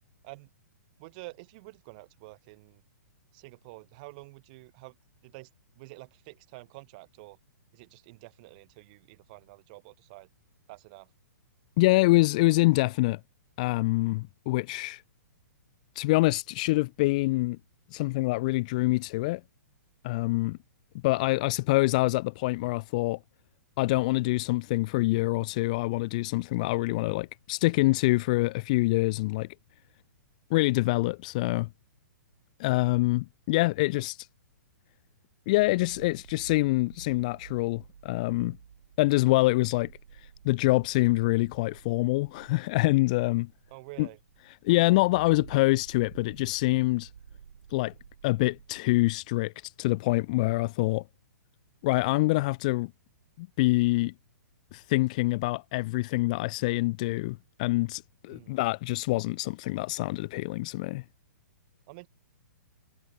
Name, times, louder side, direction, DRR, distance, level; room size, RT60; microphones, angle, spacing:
voice 1, 1.0-2.8 3.3-4.9 5.2-5.5 5.8-7.4 7.7-10.3 10.7-11.1 43.7-44.2 58.3-58.5 61.9-62.1, right 25 dB, 25° right, 5.7 m, -48 dB
voice 2, 11.8-13.2 13.6-15.0 16.0-17.6 17.9-19.4 20.0-20.6 21.0-23.2 23.8-29.5 30.5-31.7 32.6-34.3 35.5-38.6 39.0-39.9 40.4-43.5 44.0-44.1 44.6-47.1 47.7-47.9 48.2-51.0 51.8-52.9 53.4-54.1 54.7-61.0, left 21 dB, 25° left, 0.5 m, -25 dB
sound 1, 35.6-48.8, right 8 dB, 70° right, 5.4 m, -51 dB
hypercardioid pair, 175°, 10 cm